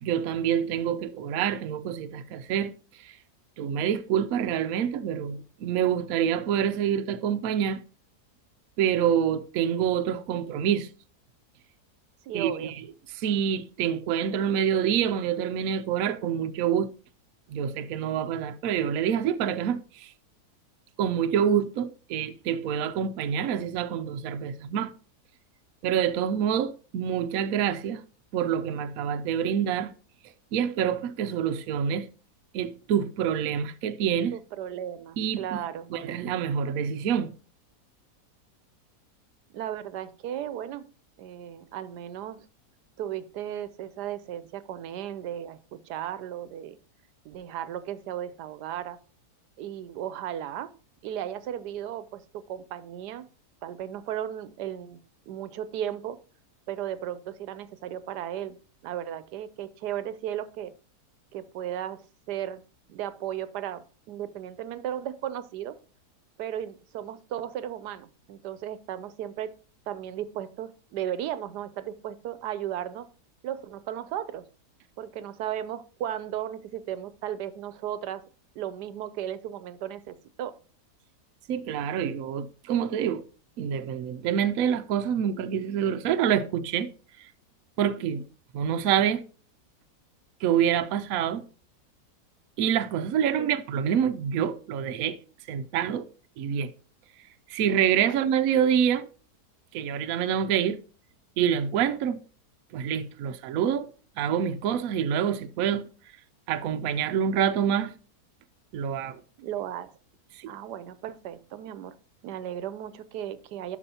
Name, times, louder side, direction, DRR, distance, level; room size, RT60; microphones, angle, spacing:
voice 1, 0.0-2.7 3.0-3.1 3.6-7.8 8.8-10.9 12.3-12.7 13.1-16.9 17.5-20.1 21.0-24.9 25.8-28.0 28.3-29.9 30.5-32.1 32.5-34.3 35.2-35.4 35.9-37.3 81.5-83.2 83.6-86.9 87.8-88.2 88.5-89.2 90.4-91.4 92.6-95.2 95.5-96.1 96.4-96.7 97.5-99.1 99.7-100.8 101.4-102.2 102.7-103.8 104.2-105.8 106.5-107.9 108.7-109.2 110.4-110.5, right 8 dB, 70° right, 1.0 m, -26 dB
voice 2, 12.2-12.7 34.3-35.9 39.5-40.9 41.2-42.5 43.0-46.8 47.2-49.0 49.6-50.7 51.0-53.3 53.6-55.0 55.3-56.2 56.7-58.6 58.8-60.7 61.3-62.0 62.3-62.6 62.9-65.8 66.4-69.5 69.9-73.1 73.4-74.4 75.0-78.2 78.6-80.6 93.4-93.6 98.0-98.2 109.4-109.9 110.5-112.0 112.2-113.8, right 11 dB, 85° right, 1.2 m, -35 dB
12.0 x 4.9 x 2.8 m
omnidirectional pair, 1.7 m